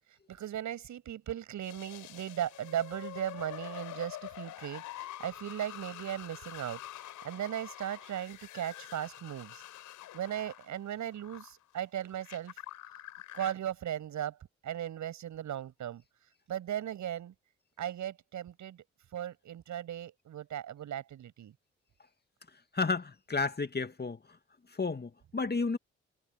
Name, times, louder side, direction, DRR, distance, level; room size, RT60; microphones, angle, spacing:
voice 1, 0.3-6.8 7.2-9.6 10.1-12.5 13.3-14.4 14.6-16.0 16.5-17.3 17.8-18.8 19.1-21.5, right 11 dB, 70° right, 7.7 m, -37 dB
sound 1, 1.6-11.5 12.1-13.5, left 14 dB, 80° left, 4.2 m, -46 dB
voice 2, 22.7-24.2 24.8-25.8, left 4 dB, 35° left, 2.2 m, -32 dB
hypercardioid pair, 40°, 30 cm